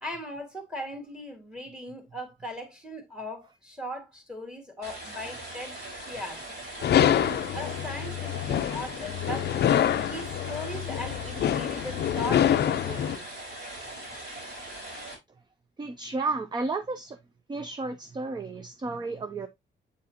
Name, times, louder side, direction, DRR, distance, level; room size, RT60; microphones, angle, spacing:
voice 1, 0.0-6.4 7.2-9.5 10.1-13.3, left 1 dB, 5° right, 2.1 m, -39 dB
sound 1, 4.8-15.1, right 1 dB, 60° right, 4.6 m, -41 dB
sound 2, 6.8-13.2, left 10 dB, 60° left, 0.4 m, -26 dB
voice 2, 15.8-17.2 17.5-19.5, right 3 dB, 20° right, 0.5 m, -32 dB
8.3 x 4.7 x 2.8 m
wide cardioid pair, 165°, 20 cm